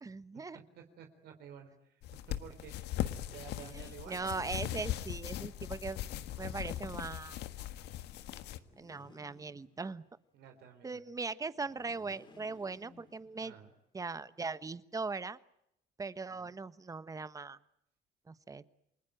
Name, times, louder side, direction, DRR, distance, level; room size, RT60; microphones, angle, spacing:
voice 1, 0.0-0.6 3.7-6.0 6.4-7.4 8.8-10.0 10.8-13.5 13.9-15.4 16.0-17.6 18.3-18.6, right 4 dB, 20° right, 14 dB, 1.2 m, -40 dB
voice 2, 0.8-2.0 2.3-2.7 3.1-4.5 10.3-11.0 13.4-13.7 16.4-16.6, right 8 dB, 75° right, 5 dB, 4.0 m, -52 dB
sound 1, 2.0-8.6, left 12 dB, 80° left, 1.5 m, -39 dB
sound 2, 8.6-10.2 11.5-13.7, left 4 dB, 25° left, 2.6 m, -61 dB
29.0 x 21.0 x 9.0 m, 0.78 s
cardioid pair, 110°, 17 cm